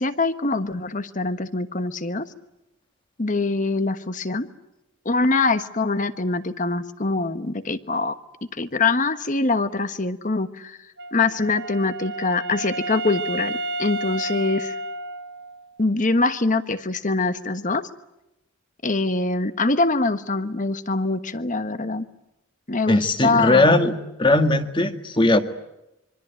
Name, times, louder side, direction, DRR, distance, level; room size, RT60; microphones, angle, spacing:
voice 1, 0.0-2.3 3.2-4.5 5.0-8.2 8.5-10.8 11.1-14.8 15.8-17.9 18.8-22.0 22.7-23.8, left 3 dB, 40° left, 11 dB, 1.3 m, -24 dB
Wind instrument woodwind instrument, 11.0-15.8, right 2 dB, 55° right, 0.9 m, -31 dB
voice 2, 22.9-25.4, left 2 dB, 25° left, 8 dB, 1.8 m, -19 dB
26.0 x 24.5 x 9.0 m, 0.90 s
head